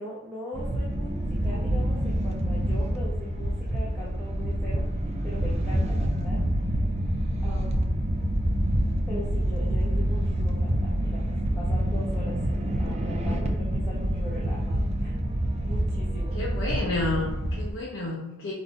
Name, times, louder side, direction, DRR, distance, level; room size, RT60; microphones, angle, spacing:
voice 1, 0.0-6.4 7.4-8.0 9.1-11.3 11.6-12.4 12.8-15.2 15.6-16.4, left 1 dB, 5° left, -8 dB, 1.0 m, -40 dB
sound 1, 0.5-17.7, equal, 30° right, 0.5 m, -27 dB
voice 2, 16.3-18.5, left 2 dB, 60° left, -4 dB, 0.8 m, -30 dB
3.9 x 2.6 x 4.7 m, 0.97 s
head